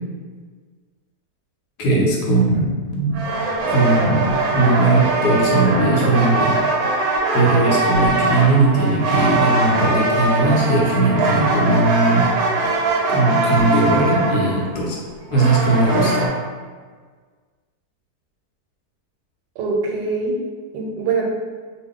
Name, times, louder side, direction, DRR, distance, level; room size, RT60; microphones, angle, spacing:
voice 1, 1.8-3.2 3.7-6.6 7.3-12.3 13.1-15.0 15.3-16.3, right 2 dB, 75° left, -3 dB, 1.1 m, -18 dB
sound 1, 3.1-16.3, right 2 dB, 70° right, 0.9 m, -21 dB
voice 2, 19.6-20.3 20.7-21.2, right 4 dB, 85° right, 0 dB, 1.2 m, -23 dB
2.8 x 2.3 x 3.5 m, 1.5 s
omnidirectional pair, 1.8 m